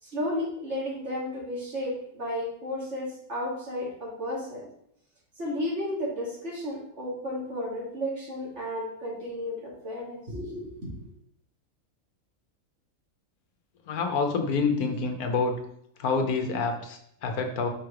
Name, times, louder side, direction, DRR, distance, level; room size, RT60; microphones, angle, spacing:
voice 1, 0.0-4.6 5.4-10.9, left 1 dB, 50° right, -6 dB, 2.9 m, -33 dB
voice 2, 13.9-15.5 16.0-17.7, left 4 dB, 90° left, 5 dB, 1.5 m, -27 dB
5.5 x 4.7 x 5.0 m, 0.71 s
omnidirectional pair, 1.5 m